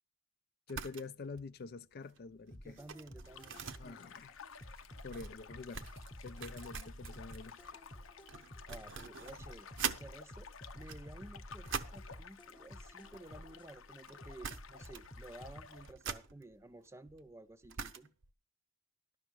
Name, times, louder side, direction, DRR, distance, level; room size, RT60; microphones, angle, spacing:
voice 1, 0.7-2.8 3.8-4.4 5.0-5.9 6.2-7.6, left 4 dB, 50° left, 0.4 m, -47 dB
sound 1, 0.7-1.1 1.4-1.6 2.0-10.1 10.7-12.1 13.0-13.8 14.1-14.2 14.4-15.2 15.5-18.3, right 6 dB, 70° right, 0.7 m, -45 dB
sound 2, 2.5-4.1 4.6-8.9 9.4-13.7 14.2-15.6, equal, 25° left, 1.0 m, -51 dB
voice 2, 2.6-4.0 8.7-10.5 10.7-18.1, right 2 dB, 15° right, 0.5 m, -53 dB
sound 3, 3.2-15.9, left 6 dB, 85° left, 0.7 m, -54 dB
11.5 x 5.9 x 6.2 m
head